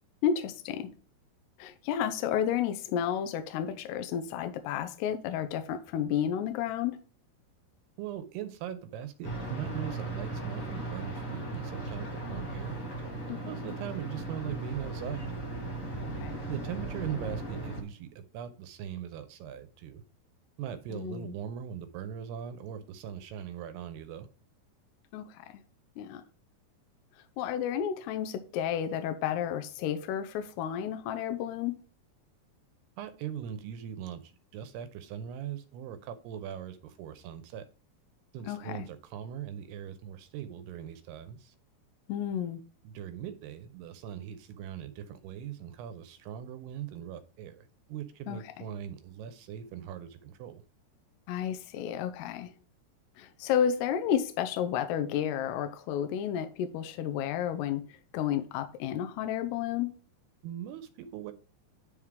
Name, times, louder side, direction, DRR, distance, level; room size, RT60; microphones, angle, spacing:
voice 1, 0.2-0.9 1.6-7.0 13.3-13.7 16.0-16.4 20.9-21.3 25.1-25.6 26.0-26.2 27.4-31.8 38.5-38.9 42.1-42.6 48.3-48.7 51.3-52.5 53.2-59.9, left 9 dB, 85° left, 2.7 m, -32 dB
voice 2, 8.0-12.8 13.5-15.3 16.5-20.0 20.6-24.3 33.0-37.7 38.3-41.5 42.8-50.6 60.4-61.3, right 9 dB, 80° right, 2.5 m, -40 dB
sound 1, 9.2-17.8, right 2 dB, 55° left, 0.9 m, -37 dB
10.0 x 3.7 x 4.7 m
omnidirectional pair, 4.8 m